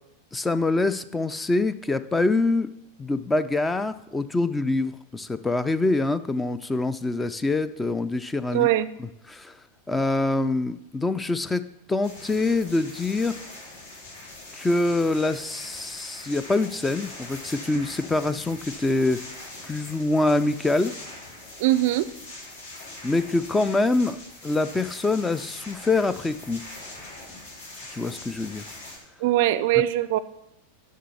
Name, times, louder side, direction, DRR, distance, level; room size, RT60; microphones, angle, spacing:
voice 1, 0.3-2.7 3.0-8.7 9.0-9.5 9.9-13.3 14.6-19.2 19.6-21.0 23.0-26.6 27.9-28.6, left 2 dB, 10° left, 13 dB, 0.4 m, -25 dB
voice 2, 8.5-8.9 21.6-22.1 29.2-30.2, right 14 dB, 50° right, 16 dB, 0.4 m, -21 dB
sound 1, 12.0-29.0, left 2 dB, 65° left, 3.0 m, -42 dB
7.4 x 6.3 x 7.0 m, 0.84 s
figure-of-eight pair, 90°, 0 cm